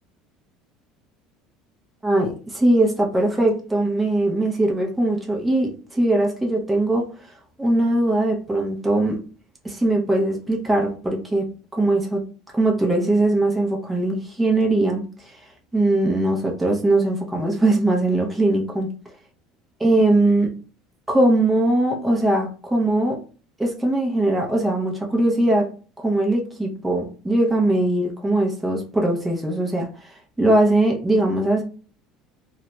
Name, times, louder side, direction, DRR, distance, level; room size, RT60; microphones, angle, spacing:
voice 1, 2.0-7.0 7.6-9.2 9.6-11.4 11.7-12.2 12.5-15.0 15.7-18.9 19.8-20.5 21.1-23.2 23.6-25.7 26.0-29.9 30.4-31.6, right 2 dB, 10° right, 0 dB, 0.6 m, -20 dB
2.3 x 2.1 x 3.0 m, 0.38 s
supercardioid pair, 115°, 0 cm